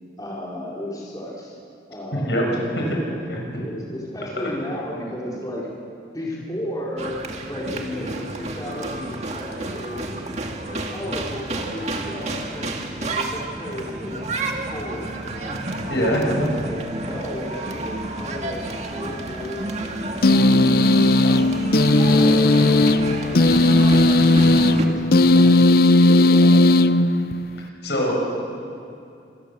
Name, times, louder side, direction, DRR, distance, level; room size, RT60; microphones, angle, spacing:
voice 1, 0.2-1.6 1.9-5.7 6.1-7.2 7.5-12.7 13.0-15.6 15.9-21.5 21.9-26.9, equal, 20° left, -5 dB, 4.3 m, -34 dB
sound 1, 7.0-24.9, right 2 dB, 40° right, 2.1 m, -30 dB
voice 2, 15.9-16.2 27.8-28.2, equal, 70° left, -1 dB, 6.8 m, -22 dB
sound 2, 20.2-27.6, left 2 dB, 55° left, 0.6 m, -16 dB
26.5 x 21.0 x 7.5 m, 2.6 s
head